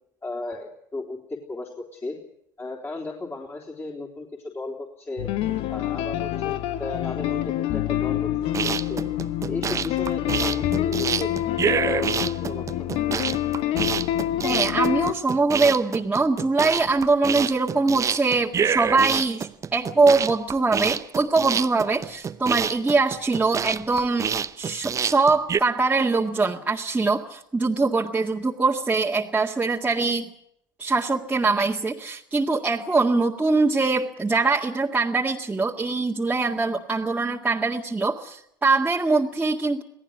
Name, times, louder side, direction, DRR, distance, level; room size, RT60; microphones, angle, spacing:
voice 1, 0.2-2.2 2.6-5.3 5.7-9.2 9.5-11.3 11.7-12.9, left 2 dB, 20° left, -1 dB, 3.8 m, -35 dB
sound 1, 5.2-15.1, left 12 dB, 55° left, 1.2 m, -26 dB
sound 2, 8.4-25.6, right 7 dB, 30° right, 0.9 m, -27 dB
voice 2, 14.4-24.3 24.6-30.3 30.8-39.8, right 3 dB, 15° right, -3 dB, 1.9 m, -23 dB
27.5 x 18.0 x 6.4 m, 0.74 s
hypercardioid pair, 70°, 11 cm